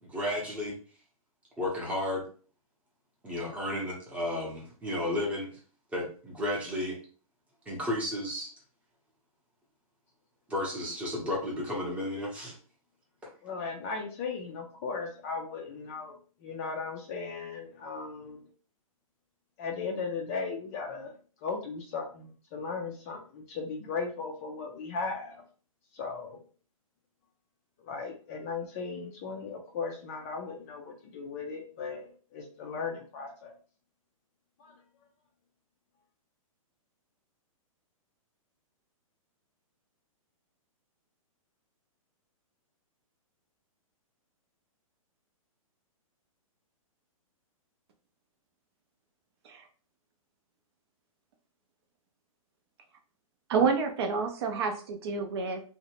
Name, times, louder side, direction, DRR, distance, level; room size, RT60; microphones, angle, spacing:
voice 1, 0.0-0.8 1.6-2.2 3.2-5.6 5.9-7.0 7.7-8.5 10.5-12.6, left 1 dB, 5° right, -3 dB, 0.7 m, -33 dB
voice 2, 13.4-18.4 19.6-25.4 25.9-26.4 27.8-33.5 34.6-34.7, left 4 dB, 25° left, 2 dB, 0.4 m, -37 dB
voice 3, 53.5-55.6, right 5 dB, 45° right, 5 dB, 0.5 m, -28 dB
2.6 x 2.1 x 2.8 m, 0.40 s
hypercardioid pair, 150°, 18 cm